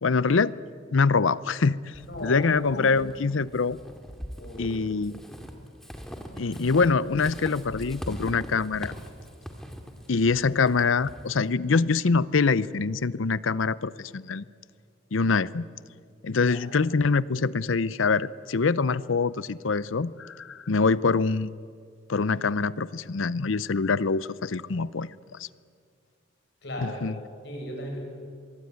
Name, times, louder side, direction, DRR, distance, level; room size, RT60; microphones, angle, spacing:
voice 1, 0.0-0.5 0.9-1.8 2.2-3.8 4.6-5.1 6.4-8.9 10.1-14.4 15.1-15.7 16.2-21.5 22.1-25.1 25.4-25.5 26.8-27.1, left 4 dB, 90° left, 18 dB, 0.7 m, -24 dB
Walk footsteps / Squeak, 1.9-11.5, equal, ahead, 2.3 m, -42 dB
voice 2, 2.1-2.4 2.7-2.9 4.3-4.8 16.5-16.6 26.6-27.0 27.4-28.0, equal, 60° left, 1 dB, 7.4 m, -36 dB
24.5 x 23.0 x 9.4 m, 2.2 s
head